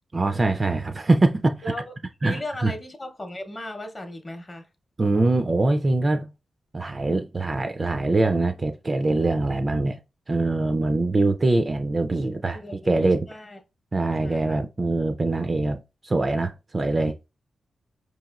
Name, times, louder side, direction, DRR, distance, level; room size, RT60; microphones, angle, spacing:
voice 1, 0.1-1.6 2.2-2.7 5.0-6.3 6.7-10.0 10.3-13.3 13.9-17.1, right 2 dB, 30° right, 0.3 m, -23 dB
voice 2, 1.6-1.9 2.2-4.7 12.5-13.6 14.2-14.6, left 1 dB, 30° left, 0.7 m, -37 dB
4.9 x 2.9 x 2.3 m
wide cardioid pair, 110°, 0 cm